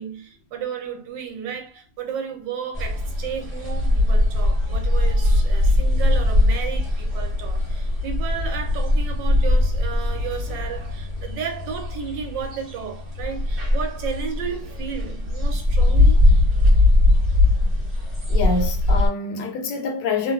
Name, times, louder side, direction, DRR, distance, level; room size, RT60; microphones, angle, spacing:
voice 1, 0.0-16.2, right 7 dB, 75° right, 1.2 m, -33 dB
sound 1, 2.7-19.1, left 2 dB, 15° right, 1.1 m, -20 dB
voice 2, 18.3-20.3, left 3 dB, 75° left, 1.2 m, -26 dB
3.1 x 2.2 x 2.3 m
omnidirectional pair, 2.1 m